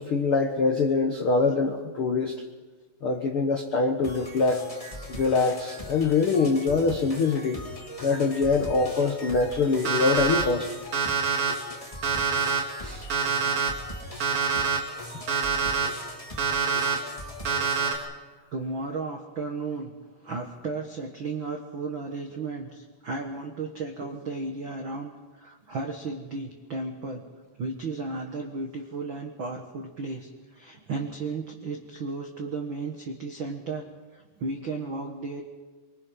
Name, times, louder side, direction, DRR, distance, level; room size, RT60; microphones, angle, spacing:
voice 1, 0.0-2.4 3.0-4.6 5.1-7.6 8.0-10.7 12.8-13.0, left 4 dB, 85° left, 3 dB, 1.2 m, -24 dB
sound 1, 4.0-18.0, left 1 dB, 15° left, 1.4 m, -40 dB
Alarm, 9.8-10.4 10.9-11.5 12.0-12.6 13.1-13.7 14.2-14.8 15.3-15.9 16.4-16.9 17.4-18.0, right 6 dB, 45° right, 3.4 m, -25 dB
voice 2, 18.5-19.9 20.2-27.2 27.6-33.8 34.1-35.4, right 3 dB, 75° right, 2 dB, 1.1 m, -34 dB
24.5 x 24.0 x 5.7 m, 1.3 s
omnidirectional pair, 4.8 m